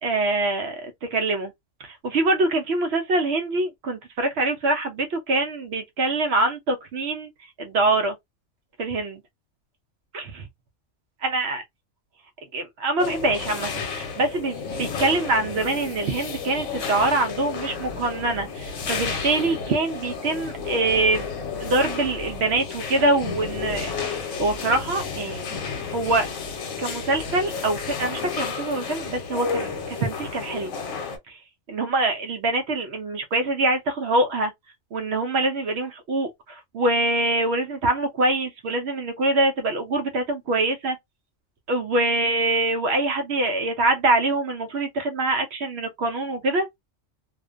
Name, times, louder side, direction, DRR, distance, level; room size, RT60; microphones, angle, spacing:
voice 1, 0.0-1.5 1.8-7.3 7.6-8.2 8.8-9.2 10.1-10.5 11.2-11.6 12.5-21.3 21.6-26.3 26.8-30.7 31.3-31.4 31.7-34.5 34.9-41.0 41.7-46.7, right 2 dB, 65° right, 0.8 m, -24 dB
sound 1, 13.0-31.2, left 5 dB, 80° left, 1.0 m, -32 dB
2.5 x 2.1 x 2.4 m
omnidirectional pair, 1.3 m